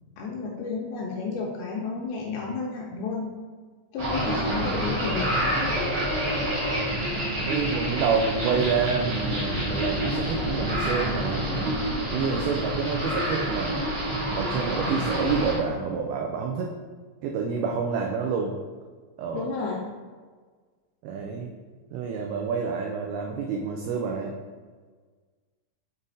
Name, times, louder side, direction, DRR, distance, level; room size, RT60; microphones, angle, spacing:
voice 1, 0.2-3.3 3.9-5.5 19.3-19.8, left 4 dB, 85° left, -2 dB, 2.3 m, -32 dB
sound 1, 4.0-15.6, equal, 65° right, 1.2 m, -27 dB
voice 2, 4.3-4.8 7.4-11.7 12.1-13.8 14.3-16.8 17.2-18.6 19.2-19.5 21.0-21.5 21.9-24.3, right 5 dB, 90° right, 1 dB, 2.2 m, -28 dB
6.6 x 4.0 x 3.7 m, 1.5 s
omnidirectional pair, 5.0 m